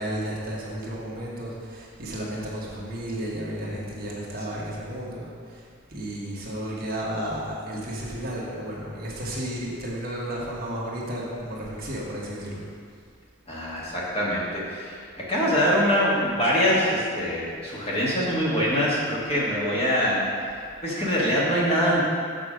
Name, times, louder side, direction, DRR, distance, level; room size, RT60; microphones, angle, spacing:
voice 1, 0.0-5.3 5.9-12.6, equal, 45° right, -5 dB, 1.4 m, -33 dB
voice 2, 13.5-20.2 20.8-22.0, equal, 30° left, -6 dB, 1.5 m, -24 dB
6.6 x 4.8 x 6.2 m, 2.1 s
head